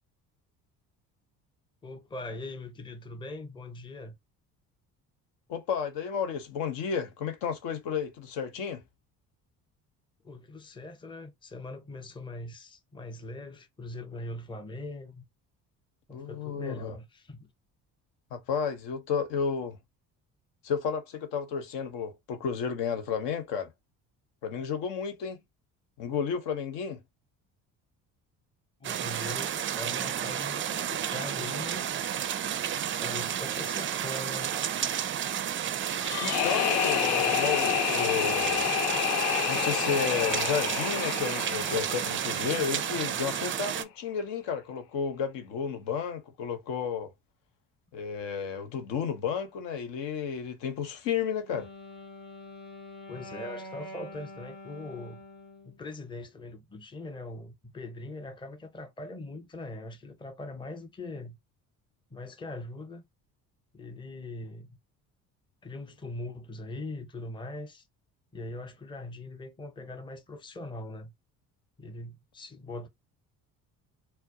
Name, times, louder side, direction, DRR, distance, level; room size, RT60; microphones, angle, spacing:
voice 1, 1.8-4.2 10.2-15.2 16.1-17.5 28.8-32.2 33.0-34.5 53.1-55.2 55.6-61.4 62.1-63.0 63.7-64.7 65.6-67.8 68.3-71.1 71.8-72.9, left 2 dB, 10° left, 0.7 m, -41 dB
voice 2, 5.5-8.8 16.1-17.0 18.3-19.8 20.6-23.7 24.4-25.4 26.0-27.0 36.2-38.7 39.5-47.1 47.9-51.7, left 7 dB, 60° left, 0.9 m, -32 dB
sound 1, 28.8-43.8, right 9 dB, 30° right, 0.4 m, -31 dB
sound 2, 36.0-43.0, left 11 dB, 80° left, 0.5 m, -29 dB
Wind instrument woodwind instrument, 51.2-55.8, left 1 dB, 35° left, 1.5 m, -45 dB
4.2 x 2.1 x 2.7 m
hypercardioid pair, 55°, 47 cm